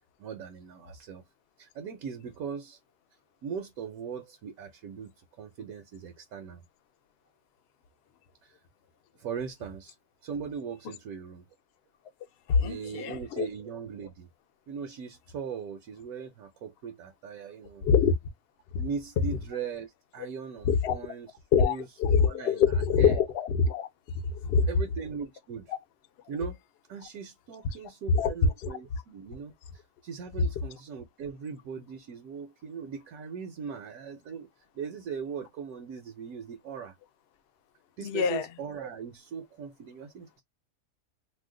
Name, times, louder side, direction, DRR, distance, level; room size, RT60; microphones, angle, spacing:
voice 1, 0.2-1.2 1.6-2.8 3.4-5.1 5.4-6.6 8.4-8.6 9.2-9.9 10.2-11.4 12.6-14.3 14.7-17.8 18.8-21.9 22.3-22.6 23.0-23.2 24.7-25.7 26.3-26.6 26.9-34.5 34.7-36.9 38.0-40.4, right 6 dB, 70° right, 1.0 m, -39 dB
voice 2, 12.5-13.5 17.8-18.1 20.6-21.0 21.5-23.9 24.5-24.7 28.1-28.3 28.6-28.7 38.0-38.5, left 6 dB, 65° left, 0.6 m, -24 dB
2.7 x 2.1 x 3.6 m
omnidirectional pair, 1.7 m